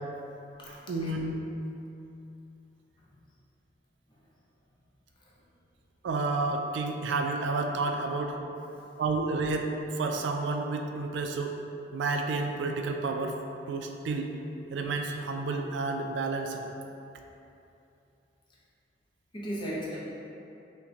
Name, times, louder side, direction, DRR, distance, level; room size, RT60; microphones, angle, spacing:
voice 1, 0.7-1.4 6.0-8.4 9.0-11.6 11.9-13.4 13.7-14.3 14.7-16.6, right 3 dB, 85° right, 4 dB, 0.3 m, -30 dB
voice 2, 19.3-20.0, equal, 25° left, -6 dB, 0.6 m, -36 dB
5.4 x 2.2 x 2.7 m, 2.8 s
head